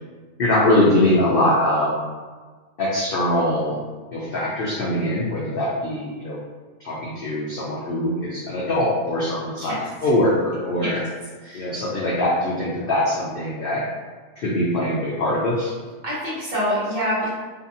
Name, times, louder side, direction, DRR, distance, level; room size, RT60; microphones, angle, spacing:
voice 1, 0.4-2.0 2.8-3.8 4.1-6.4 6.8-9.7 10.0-11.0 11.5-13.8 14.4-15.7, left 1 dB, 80° left, -6 dB, 0.5 m, -22 dB
voice 2, 9.6-10.1 10.8-11.0 11.4-11.7 16.0-17.3, equal, 35° right, -9 dB, 0.9 m, -26 dB
2.7 x 2.6 x 2.6 m, 1.4 s
omnidirectional pair, 1.5 m